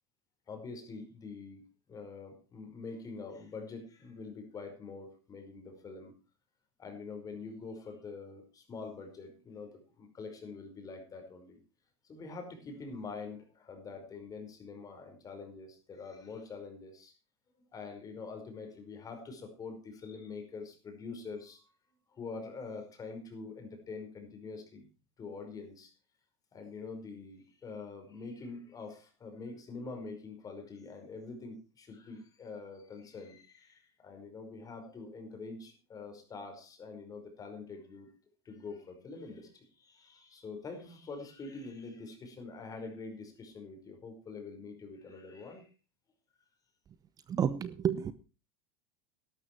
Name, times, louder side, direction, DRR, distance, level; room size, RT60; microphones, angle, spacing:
voice 1, 0.5-6.1 6.8-11.6 12.0-17.1 17.7-21.7 22.1-24.9 25.2-25.9 26.5-38.1 38.4-45.7, left 4 dB, 30° left, 5.2 m, -45 dB
voice 2, 47.3-48.1, right 8 dB, 30° right, 0.7 m, -30 dB
12.5 x 12.5 x 4.6 m
supercardioid pair, 115°, 13 cm